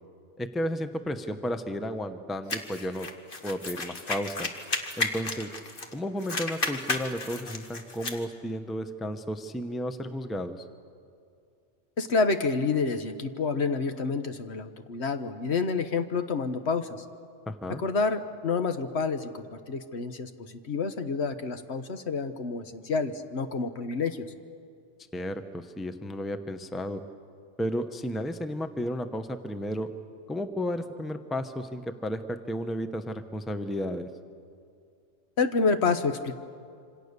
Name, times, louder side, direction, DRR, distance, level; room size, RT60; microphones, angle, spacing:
voice 1, 0.4-3.1 3.4-4.5 5.0-5.5 5.9-10.6 17.5-17.8 25.1-27.0 27.6-29.9 30.3-34.1, equal, ahead, 8 dB, 0.8 m, -33 dB
sound 1, 2.5-5.9 6.2-8.2, left 2 dB, 45° left, 1.7 m, -33 dB
voice 2, 12.0-17.0 17.8-24.3 35.4-36.3, left 4 dB, 60° left, 8 dB, 1.3 m, -28 dB
27.0 x 26.0 x 6.8 m, 2.4 s
omnidirectional pair, 1.3 m